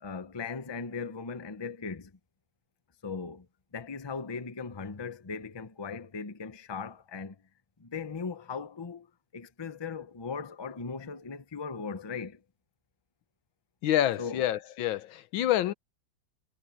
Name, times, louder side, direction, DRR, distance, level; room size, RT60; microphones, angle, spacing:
voice 1, 0.0-2.1 3.0-3.5 3.7-7.4 7.8-9.1 9.3-12.4 14.2-14.5, left 5 dB, 25° left, 0.5 m, -38 dB
voice 2, 13.8-15.7, left 12 dB, 85° left, 1.6 m, -27 dB
omnidirectional pair, 2.1 m